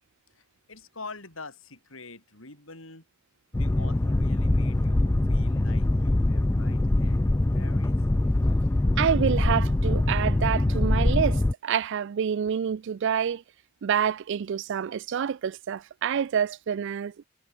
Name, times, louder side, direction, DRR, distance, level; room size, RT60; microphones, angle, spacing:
voice 1, 0.3-3.0 3.5-8.0, left 3 dB, 80° left, 6.5 m, -45 dB
Boat Water vehicle, 3.5-11.5, left 1 dB, 15° left, 0.3 m, -23 dB
voice 2, 9.0-13.4 13.8-17.3, right 8 dB, 60° right, 0.4 m, -27 dB
head